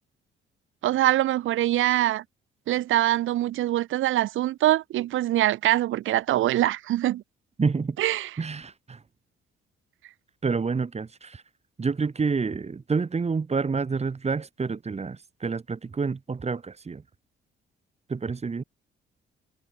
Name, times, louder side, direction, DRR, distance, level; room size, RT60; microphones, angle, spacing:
voice 1, 0.8-2.2 2.7-7.2 8.0-8.3, right 14 dB, 80° right, 2.1 m, -23 dB
voice 2, 7.6-8.0 8.4-9.0 10.4-11.4 11.8-17.0 18.1-18.6, right 4 dB, 30° right, 4.5 m, -28 dB
cardioid pair, 90°, 20 cm